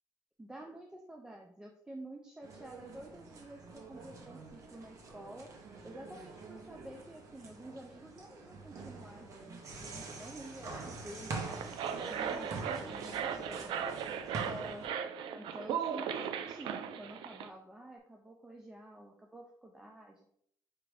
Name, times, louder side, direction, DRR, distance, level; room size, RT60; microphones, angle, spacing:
voice 1, 0.4-5.5 5.8-11.6 12.0-14.9 15.4-20.3, right 1 dB, 10° right, 0 dB, 0.4 m, -50 dB
sound 1, 2.4-14.9, right 3 dB, 40° right, 0.7 m, -45 dB
sound 2, 11.3-17.5, right 8 dB, 80° right, 0.4 m, -38 dB
4.7 x 2.5 x 3.2 m, 0.67 s
cardioid pair, 170°, 8 cm